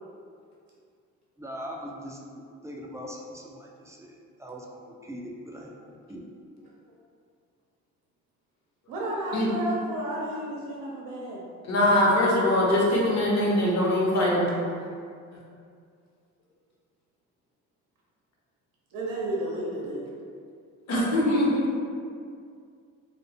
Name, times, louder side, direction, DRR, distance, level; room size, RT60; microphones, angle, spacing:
voice 1, 1.4-6.3, equal, 10° right, -2 dB, 0.3 m, -41 dB
voice 2, 8.9-11.4 18.9-20.1, right 1 dB, 80° right, -4 dB, 0.5 m, -32 dB
voice 3, 11.6-14.5 20.9-21.6, left 1 dB, 55° left, -4 dB, 0.8 m, -22 dB
2.3 x 2.1 x 2.7 m, 2.3 s
supercardioid pair, 60°, 33 cm